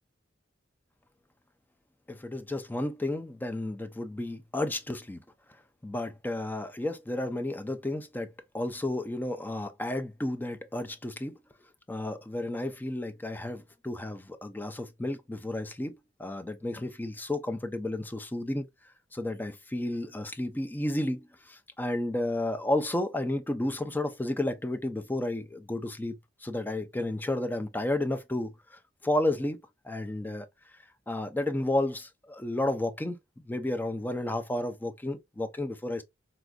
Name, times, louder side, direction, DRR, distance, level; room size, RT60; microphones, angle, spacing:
voice 1, 2.1-5.2 5.8-11.4 11.9-18.7 19.1-30.5 31.1-33.2 33.5-36.0, left 1 dB, 10° left, 0.4 m, -32 dB
4.0 x 2.5 x 2.2 m
head